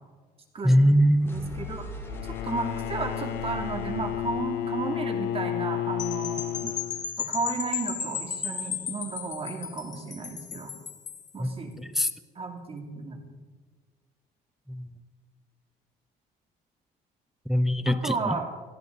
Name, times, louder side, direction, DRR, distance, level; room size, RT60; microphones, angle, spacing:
voice 1, 0.6-1.3 6.6-6.7 11.4-11.5 11.8-12.1 14.7-14.9 17.5-18.4, equal, ahead, 11 dB, 0.6 m, -22 dB
sound 1, 1.2-7.0, left 1 dB, 15° left, 3.2 m, -42 dB
voice 2, 1.3-1.9 2.4-6.4 7.2-10.7 11.3-11.7 12.3-13.2 17.8-18.5, right 4 dB, 35° right, 3 dB, 2.8 m, -33 dB
Bowed string instrument, 2.0-7.3, left 12 dB, 85° left, 0.5 m, -32 dB
sound 2, 6.0-11.3, left 7 dB, 45° left, 2.0 m, -34 dB
18.5 x 14.5 x 4.1 m, 1.5 s
cardioid pair, 110°, 17 cm